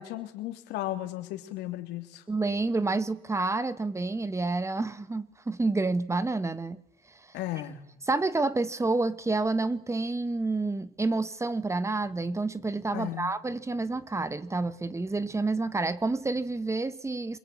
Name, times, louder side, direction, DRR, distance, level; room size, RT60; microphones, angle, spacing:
voice 1, 0.0-2.2 7.3-7.8 12.9-13.3, left 14 dB, 90° left, 3.3 m, -35 dB
voice 2, 2.3-6.8 8.1-17.4, right 3 dB, 15° right, 1.5 m, -29 dB
27.0 x 23.5 x 8.7 m
cardioid pair, 110°, 17 cm